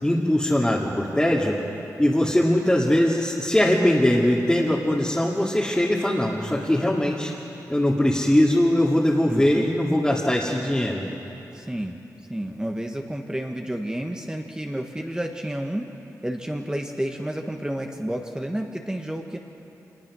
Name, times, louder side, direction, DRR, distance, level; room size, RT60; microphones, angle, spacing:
voice 1, 0.0-1.6 2.0-7.3 7.7-11.0, left 1 dB, 10° left, -5 dB, 2.3 m, -21 dB
voice 2, 9.3-9.7 11.5-12.0 12.3-15.9 16.2-19.4, right 1 dB, 10° right, 2 dB, 1.4 m, -30 dB
25.0 x 19.5 x 6.3 m, 3.0 s
cardioid pair, 70°, 7 cm